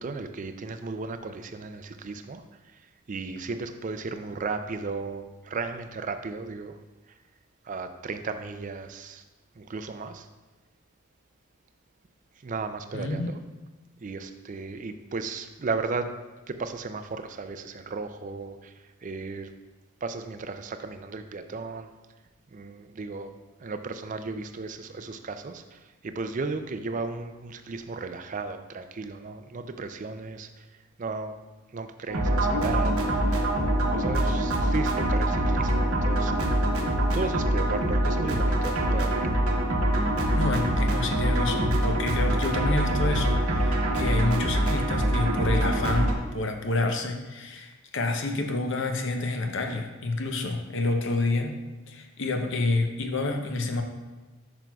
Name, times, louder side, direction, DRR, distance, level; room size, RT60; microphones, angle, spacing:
voice 1, 0.0-6.8 7.1-7.2 7.6-9.2 9.6-10.3 12.4-13.4 14.0-16.2 16.5-18.7 19.0-19.5 20.0-21.9 22.5-23.3 23.6-30.7 31.0-31.4 31.7-33.6 33.9-36.7 37.1-39.3, right 4 dB, 35° right, 8 dB, 0.3 m, -35 dB
voice 2, 12.9-13.3 38.3-38.4 40.3-53.8, left 2 dB, 55° left, 5 dB, 0.7 m, -28 dB
sound 1, 32.1-46.1, right 1 dB, 80° right, 1.0 m, -24 dB
8.9 x 6.0 x 2.3 m, 1.2 s
head